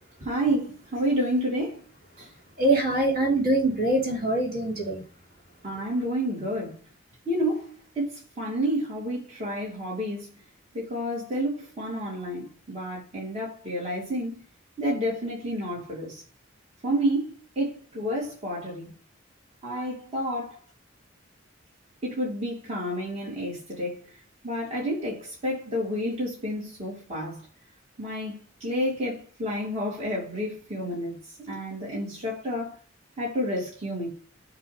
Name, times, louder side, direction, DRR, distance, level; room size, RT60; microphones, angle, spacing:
voice 1, 0.2-1.8 2.2-2.3 5.6-6.8 7.3-10.3 10.7-14.4 14.8-16.2 16.8-18.9 19.6-20.6 22.0-24.0 24.4-27.4 28.0-31.2 31.5-32.8 33.2-34.1, equal, 35° right, 2.6 m, -30 dB
voice 2, 2.6-5.0, right 1 dB, 50° right, 3.1 m, -23 dB
7.3 x 2.8 x 5.0 m
head